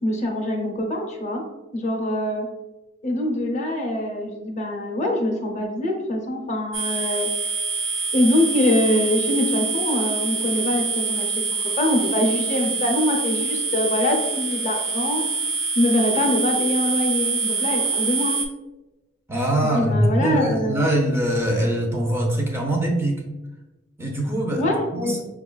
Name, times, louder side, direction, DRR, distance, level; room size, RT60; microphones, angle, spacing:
voice 1, 0.0-1.4 1.7-2.5 3.0-7.3 8.1-15.2 15.7-18.4 19.6-20.9 24.5-25.2, left 1 dB, 35° left, 1 dB, 0.7 m, -24 dB
sound 1, 6.7-18.5, right 4 dB, 70° right, 0.6 m, -25 dB
voice 2, 19.3-23.3 24.0-24.7 25.0-25.2, right 1 dB, 15° right, 1 dB, 0.6 m, -22 dB
5.7 x 2.4 x 2.2 m, 1.1 s
head